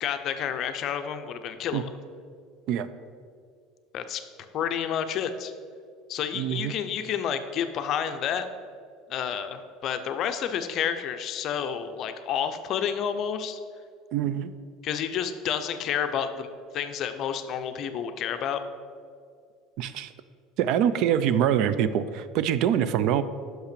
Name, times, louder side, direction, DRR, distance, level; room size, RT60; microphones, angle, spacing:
voice 1, 0.0-1.9 3.9-4.2 4.5-5.5 6.1-8.5 9.1-13.6 14.8-16.5 16.7-18.6, left 8 dB, 45° left, 9 dB, 0.5 m, -30 dB
voice 2, 6.3-6.7 14.1-14.5 19.8-20.1 20.6-23.2, right 9 dB, 60° right, 14 dB, 0.4 m, -24 dB
6.0 x 5.5 x 6.7 m, 2.2 s
cardioid pair, 140°, 0 cm